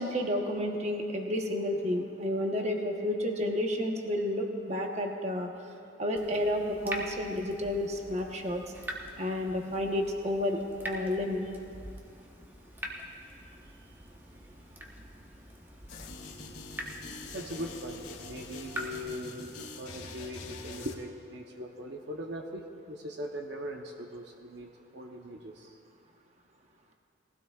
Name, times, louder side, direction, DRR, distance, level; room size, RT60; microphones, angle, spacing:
voice 1, 0.0-5.5 6.0-8.6 9.2-10.6 10.8-11.5, left 1 dB, 35° right, 2 dB, 1.1 m, -31 dB
Water tap faucet / Drip, 6.2-19.1, equal, 10° right, 1.0 m, -44 dB
voice 2, 14.3-15.1 17.3-25.8, equal, 60° right, 1 dB, 0.8 m, -41 dB
sound 1, 15.9-20.9, left 3 dB, 70° left, 2.3 m, -44 dB
21.5 x 16.0 x 2.4 m, 2.5 s
head